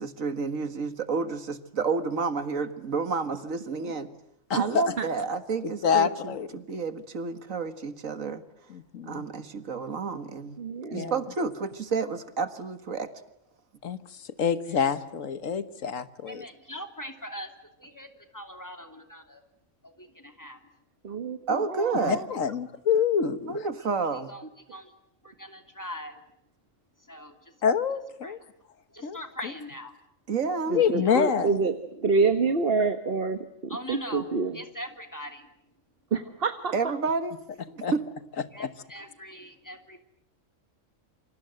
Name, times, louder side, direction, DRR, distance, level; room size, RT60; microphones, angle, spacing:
voice 1, 0.0-4.1 4.5-8.4 9.0-10.6 10.9-13.1 21.5-22.3 23.5-24.3 30.3-30.8 36.7-37.4 37.7-38.0, right 4 dB, 80° right, 10 dB, 2.1 m, -30 dB
voice 2, 4.5-4.8 5.6-6.5 8.7-9.3 10.9-11.1 13.8-14.0 14.4-16.4 22.1-23.6 27.6-28.4 29.0-29.2 30.7-31.5 37.8-37.9 38.6-38.7, left 7 dB, 80° left, 12 dB, 1.7 m, -26 dB
voice 3, 10.6-11.2 21.0-22.3 30.7-34.6 36.1-36.7, right 4 dB, 45° right, 9 dB, 1.4 m, -27 dB
voice 4, 14.6-14.9 16.3-17.5 17.8-19.4 19.8-20.6 23.8-23.9 24.1-24.9 25.2-26.2 27.0-27.6 28.2-28.4 28.9-29.9 30.9-31.2 33.7-34.3 34.5-35.5 38.5-40.0, equal, 15° left, 5 dB, 3.0 m, -42 dB
29.0 x 25.5 x 7.8 m, 0.80 s
omnidirectional pair, 1.4 m